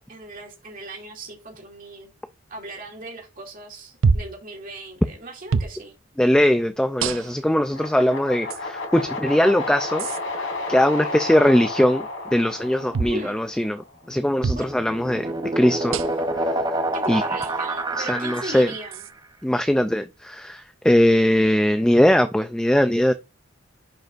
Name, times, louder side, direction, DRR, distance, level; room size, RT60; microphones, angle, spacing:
voice 1, 0.1-2.1 2.5-6.0 12.8-13.4 14.5-14.6 16.9-19.1, right 2 dB, 45° right, 2.5 m, -37 dB
sound 1, 4.0-4.4 5.5-5.8 7.0-7.5 8.5-8.6 10.0-10.2 12.9-13.2 14.4-14.7 15.9-16.3 17.4-17.5 18.9-19.1, right 5 dB, 75° right, 0.5 m, -25 dB
voice 2, 6.2-10.1 10.4-12.1 12.3-13.8 14.1-16.0 16.3-16.5 17.1-17.2 17.9-18.7 19.4-23.1, left 1 dB, 5° left, 0.3 m, -20 dB
sound 2, 7.7-13.8, left 2 dB, 90° left, 2.9 m, -32 dB
sound 3, 14.2-19.0, right 1 dB, 20° right, 0.8 m, -27 dB
10.5 x 5.2 x 2.5 m
head